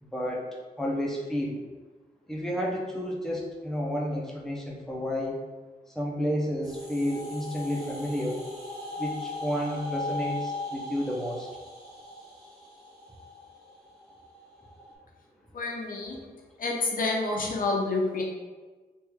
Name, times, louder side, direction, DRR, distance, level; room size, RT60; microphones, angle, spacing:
voice 1, 0.0-1.6 2.3-5.4 5.9-8.4 9.0-11.5, equal, 5° left, -3 dB, 0.7 m, -31 dB
sound 1, 6.6-14.9, left 2 dB, 70° right, 1.5 m, -38 dB
voice 2, 15.5-16.2 16.6-18.2, left 3 dB, 55° left, -2 dB, 0.8 m, -28 dB
3.1 x 2.6 x 3.5 m, 1.3 s
cardioid pair, 75°, 17 cm